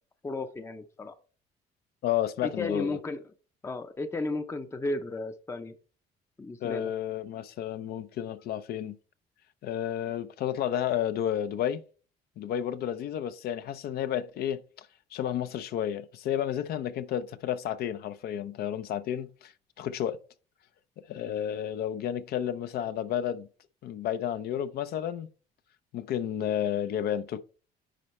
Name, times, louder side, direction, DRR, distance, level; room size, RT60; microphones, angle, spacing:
voice 1, 0.2-1.1 2.4-3.2 3.6-5.7 6.4-6.9, left 2 dB, 15° left, 0.6 m, -34 dB
voice 2, 2.0-3.0 6.6-9.0 9.6-11.8 12.4-19.5 19.8-20.2 21.1-23.5 23.8-25.3 25.9-27.4, left 10 dB, 65° left, 0.6 m, -31 dB
10.0 x 4.3 x 3.1 m
cardioid pair, 110°, 17 cm